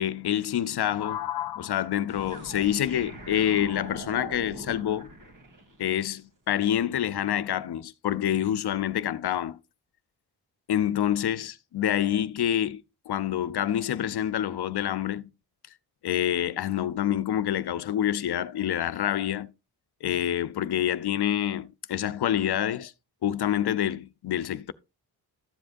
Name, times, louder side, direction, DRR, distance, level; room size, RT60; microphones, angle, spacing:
voice 1, 0.0-5.1 5.8-9.6 10.7-15.3 16.0-19.5 20.0-22.9 23.2-24.7, left 11 dB, 70° left, 0.7 m, -27 dB
sound 1, 2.1-6.0, right 1 dB, 50° right, 2.3 m, -42 dB
13.0 x 7.6 x 2.6 m
cardioid pair, 75°, 40 cm